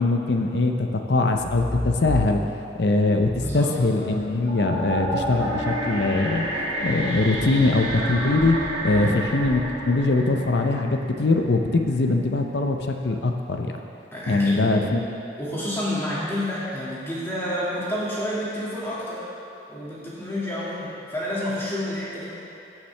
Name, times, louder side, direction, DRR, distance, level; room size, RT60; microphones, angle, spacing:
voice 1, 0.0-2.4 2.8-6.5 6.8-13.8 14.3-15.1, left 2 dB, 65° left, 4 dB, 0.6 m, -22 dB
sound 1, 1.3-2.7 3.2-10.1, left 1 dB, 30° left, 0.8 m, -36 dB
voice 2, 3.4-3.7 8.9-9.2 14.1-14.8 15.4-19.2 19.7-22.3, left 1 dB, 15° left, -9 dB, 2.1 m, -29 dB
sound 2, 4.4-11.5, right 1 dB, 80° right, 1.9 m, -30 dB
16.0 x 5.8 x 3.3 m, 3.0 s
head